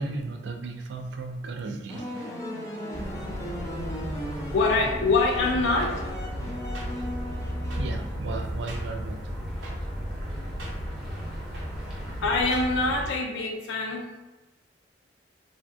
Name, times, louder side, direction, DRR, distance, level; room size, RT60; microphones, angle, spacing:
voice 1, 0.0-2.1 7.8-9.3, right 3 dB, 65° right, 4 dB, 0.3 m, -35 dB
sound 1, 1.9-8.5, left 1 dB, 15° left, 0.4 m, -37 dB
sound 2, 2.9-13.1, equal, ahead, 0.8 m, -34 dB
voice 2, 4.5-5.9 12.2-14.1, left 3 dB, 75° left, 2 dB, 0.4 m, -24 dB
sound 3, 5.8-5.9 6.7-6.9 7.7-7.8 8.7-8.8 9.6-9.7 10.6-10.7 11.5-11.7 12.5-12.7, right 1 dB, 85° right, 0.7 m, -41 dB
3.4 x 2.1 x 2.5 m, 1.1 s
head